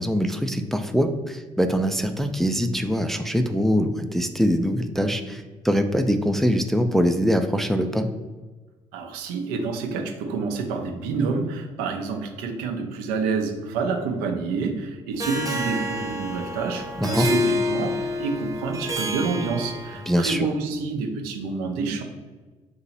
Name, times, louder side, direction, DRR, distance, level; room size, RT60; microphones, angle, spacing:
voice 1, 0.0-8.1 17.0-17.3 20.1-20.5, equal, ahead, 6 dB, 0.3 m, -23 dB
voice 2, 8.9-22.0, right 4 dB, 70° right, 4 dB, 0.6 m, -28 dB
Harp, 15.2-20.2, left 1 dB, 20° right, 0.8 m, -28 dB
2.9 x 2.7 x 4.1 m, 1.3 s
hypercardioid pair, 50°, 16 cm